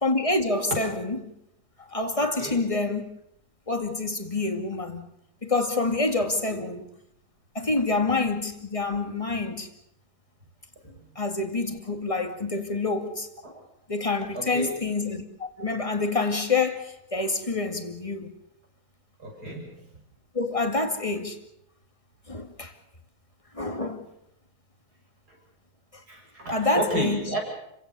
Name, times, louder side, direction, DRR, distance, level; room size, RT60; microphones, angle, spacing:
voice 1, 0.0-1.2 1.9-3.0 3.7-5.1 5.4-6.8 7.5-9.7 11.2-13.3 13.9-18.3 20.3-21.4 22.3-22.7 23.5-24.1 26.5-27.2, left 3 dB, 20° left, 2.3 m, -27 dB
voice 2, 14.3-14.8 19.2-19.7 25.3-25.4 26.1-27.4, right 1 dB, 55° right, 7.7 m, -32 dB
30.0 x 17.0 x 6.9 m
omnidirectional pair, 2.0 m